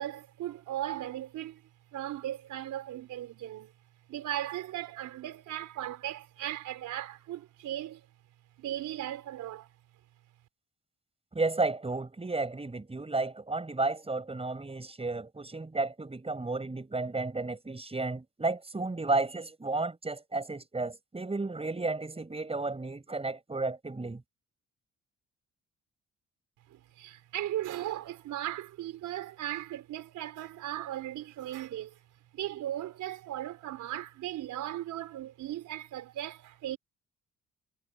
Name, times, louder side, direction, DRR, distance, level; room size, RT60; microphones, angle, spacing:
voice 1, 0.0-1.6 1.9-3.7 4.1-8.1 8.6-9.7 26.7-31.9 32.3-36.8, right 13 dB, 85° right, 4.5 m, -37 dB
voice 2, 11.3-24.2, right 3 dB, 20° right, 5.6 m, -32 dB
cardioid pair, 90°, 30 cm